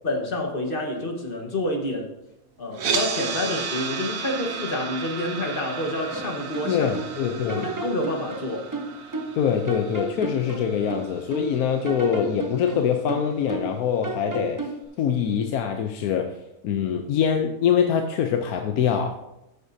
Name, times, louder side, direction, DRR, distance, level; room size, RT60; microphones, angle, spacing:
voice 1, 0.0-2.1 2.6-6.9 7.2-8.7, left 1 dB, 40° left, 1 dB, 1.5 m, -28 dB
sound 1, 2.7-12.8, right 6 dB, 65° right, 1.2 m, -34 dB
sound 2, 6.1-7.1 7.5-9.4 9.7-11.5 11.8-13.8 14.0-14.8, right 3 dB, 20° right, 0.6 m, -33 dB
voice 2, 6.6-7.7 9.3-14.7 15.0-16.3 16.6-19.2, left 8 dB, 75° left, 5 dB, 1.2 m, -24 dB
14.0 x 8.1 x 2.7 m, 0.89 s
omnidirectional pair, 1.6 m